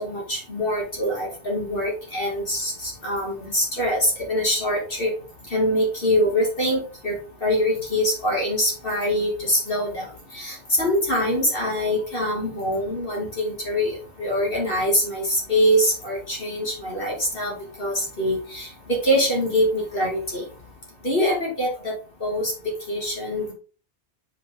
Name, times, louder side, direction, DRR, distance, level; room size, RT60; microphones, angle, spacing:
voice 1, 0.0-5.1 5.5-7.1 7.4-10.0 10.3-20.4 21.0-21.9 22.2-22.5 22.9-23.5, equal, 55° left, -3 dB, 2.5 m, -24 dB
6.5 x 5.4 x 3.6 m, 0.37 s
omnidirectional pair, 1.1 m